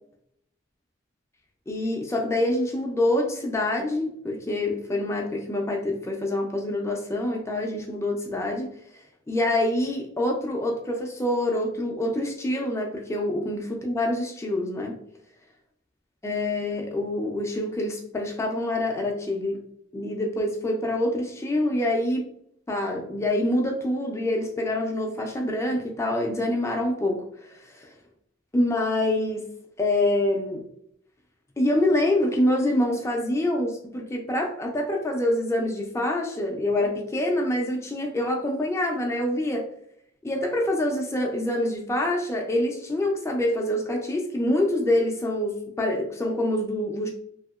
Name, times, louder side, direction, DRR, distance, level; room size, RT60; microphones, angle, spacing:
voice 1, 1.7-8.7 9.3-15.0 16.2-19.6 19.9-22.2 22.7-27.2 27.5-27.9 28.5-29.5 29.8-30.6 31.6-39.7 40.2-47.1, left 1 dB, 15° left, 1 dB, 0.3 m, -26 dB
2.8 x 2.7 x 2.3 m, 0.69 s
head